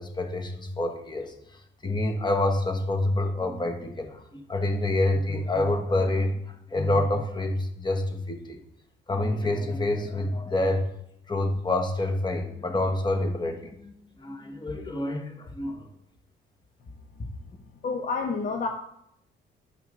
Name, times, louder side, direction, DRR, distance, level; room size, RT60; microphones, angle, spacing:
voice 1, 0.0-1.3 1.8-8.6 9.1-10.9 11.3-13.9 14.2-15.9, left 1 dB, 20° left, 4 dB, 1.4 m, -27 dB
voice 2, 17.8-18.7, left 4 dB, 45° left, 4 dB, 0.9 m, -28 dB
10.0 x 5.7 x 3.7 m, 0.74 s
cardioid pair, 90°, 20 cm